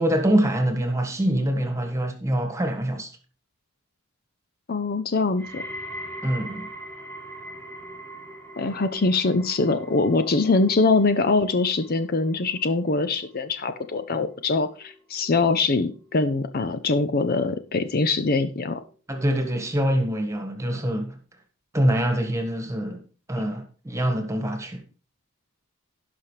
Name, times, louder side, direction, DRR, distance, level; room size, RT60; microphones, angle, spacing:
voice 1, 0.0-3.1 6.2-6.7 19.1-21.2 21.7-23.0 23.3-24.8, right 1 dB, 15° right, 1.5 m, -24 dB
voice 2, 4.7-5.6 8.6-18.8, left 3 dB, 45° left, 0.6 m, -23 dB
sound 1, 5.4-16.5 16.8-17.3 18.1-18.2, right 1 dB, 5° left, 1.7 m, -42 dB
17.0 x 5.7 x 3.2 m
head